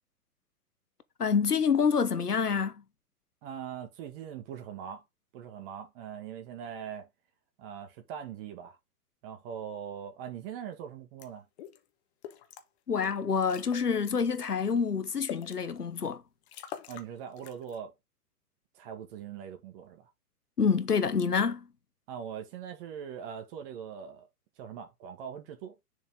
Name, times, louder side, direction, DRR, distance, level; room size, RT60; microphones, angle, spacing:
voice 1, 1.2-2.8 12.9-16.2 20.6-21.7, left 6 dB, 85° left, 1.2 m, -27 dB
voice 2, 3.4-5.0 5.3-7.1 7.6-8.8 9.2-11.4 16.9-17.9 18.7-20.1 22.1-24.3 24.6-25.7, right 8 dB, 35° right, 1.7 m, -41 dB
sound 1, 11.2-11.3 11.6-11.8 12.2-12.6 13.0-13.1 13.4-14.2 14.7-15.6 16.1-16.2 16.4-17.1 17.4-17.8, left 10 dB, 45° left, 1.5 m, -44 dB
7.0 x 4.5 x 3.7 m
figure-of-eight pair, 115°, 45 cm